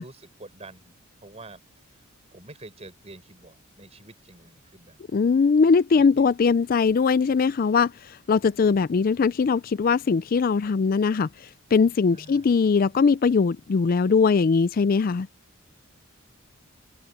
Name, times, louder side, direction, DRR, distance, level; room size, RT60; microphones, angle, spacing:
voice 1, 0.0-5.0 6.0-6.2 12.1-12.5, right 2 dB, 30° right, 4.7 m, -47 dB
voice 2, 5.1-11.3 11.7-15.3, left 5 dB, 45° left, 0.4 m, -21 dB
head